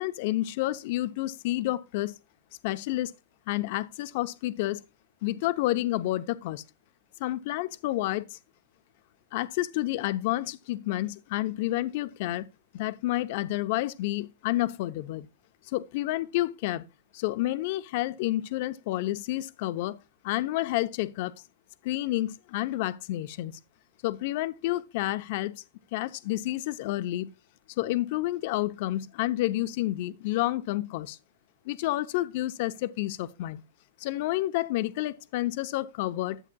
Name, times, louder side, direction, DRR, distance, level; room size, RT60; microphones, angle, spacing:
voice 1, 0.0-2.1 2.6-3.1 3.5-4.8 5.2-6.6 7.2-8.4 9.3-12.5 12.7-15.3 15.7-16.8 17.1-20.0 20.2-21.3 21.8-23.5 24.0-25.6 25.9-27.3 27.8-31.2 31.6-33.6 34.0-36.4, left 16 dB, 50° left, 0.7 m, -29 dB
11.0 x 8.3 x 2.3 m
hypercardioid pair, 140°, 0 cm